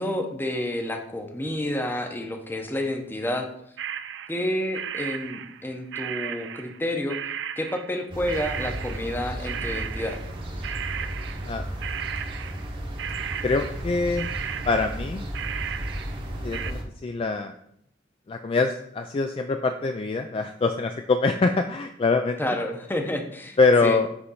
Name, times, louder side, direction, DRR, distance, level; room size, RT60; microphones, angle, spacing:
voice 1, 0.0-3.5 4.3-7.2 7.6-10.2 22.4-24.0, left 1 dB, 10° left, 4 dB, 0.7 m, -29 dB
sound 1, 3.8-4.5 4.7-6.8 7.1-16.3 16.5-16.7, right 8 dB, 70° right, 0.4 m, -35 dB
sound 2, 8.1-16.8, right 1 dB, 30° right, 0.9 m, -34 dB
voice 2, 13.4-15.3 16.4-17.5 18.3-22.4 23.6-24.1, left 3 dB, 30° left, 6 dB, 0.3 m, -24 dB
6.1 x 3.2 x 5.5 m, 0.72 s
head